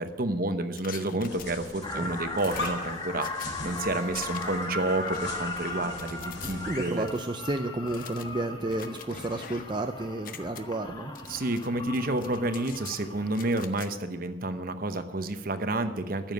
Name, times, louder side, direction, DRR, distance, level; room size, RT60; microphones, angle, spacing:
voice 1, 0.0-7.1 11.3-16.3, right 2 dB, 50° right, 9 dB, 0.9 m, -30 dB
sound 1, 0.8-1.9 2.4-3.5 4.1-4.7 5.0-6.5 7.1-7.2 7.9-9.8 10.1-10.6 11.1-11.7 11.9-13.0 13.3-13.9, left 8 dB, 50° left, 0.7 m, -45 dB
sound 2, 1.2-7.0, left 2 dB, 90° left, 4.2 m, -40 dB
sound 3, 1.8-13.7, left 2 dB, 25° left, 1.4 m, -38 dB
voice 2, 6.7-11.1, right 2 dB, 25° right, 6 dB, 0.5 m, -31 dB
14.0 x 7.3 x 9.4 m, 1.3 s
head